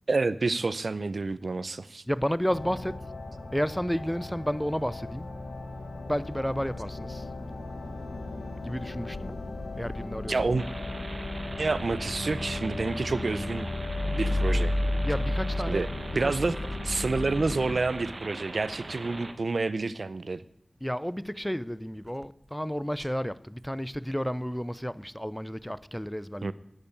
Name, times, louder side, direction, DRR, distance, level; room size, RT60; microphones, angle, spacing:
voice 1, 0.1-2.0 10.3-10.7 11.6-13.7 14.1-14.7 15.7-15.9 16.2-16.5 16.9-20.4 26.4-26.5, right 3 dB, 75° right, 0.6 m, -28 dB
voice 2, 2.1-3.0 3.5-5.3 6.1-7.3 8.6-9.4 9.8-10.5 15.0-15.9 16.2-16.7 20.8-26.5, equal, 5° left, 0.5 m, -31 dB
sound 1, 2.5-17.8, left 2 dB, 75° left, 1.4 m, -37 dB
sound 2, 10.6-19.3, right 2 dB, 55° right, 1.3 m, -41 dB
sound 3, 13.4-17.9, left 1 dB, 60° left, 2.5 m, -30 dB
11.0 x 9.0 x 8.5 m
wide cardioid pair, 60°, 0 cm